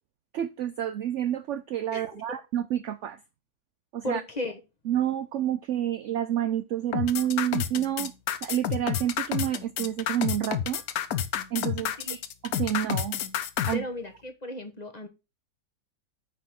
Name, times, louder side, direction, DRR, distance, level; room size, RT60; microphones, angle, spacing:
voice 1, 0.3-3.2 3.9-4.2 4.9-8.1 8.4-10.8 11.5-11.9 12.4-13.2 13.7-13.9, right 11 dB, 70° right, 0.7 m, -29 dB
voice 2, 4.0-4.6 12.0-12.2 13.7-15.1, left 1 dB, 30° left, 1.1 m, -35 dB
sound 1, 6.9-13.7, left 9 dB, 65° left, 1.2 m, -29 dB
9.3 x 3.7 x 6.2 m
omnidirectional pair, 1.7 m